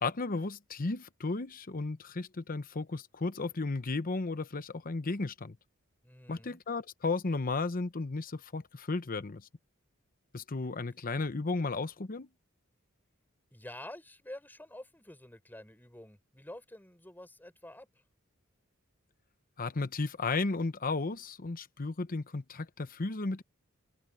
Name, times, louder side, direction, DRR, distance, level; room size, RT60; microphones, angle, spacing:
voice 1, 0.0-5.6 6.3-9.5 10.3-12.3 19.6-23.4, left 3 dB, 45° left, 0.8 m, -34 dB
voice 2, 6.0-6.6 13.5-17.9, left 1 dB, 10° left, 5.6 m, -48 dB
head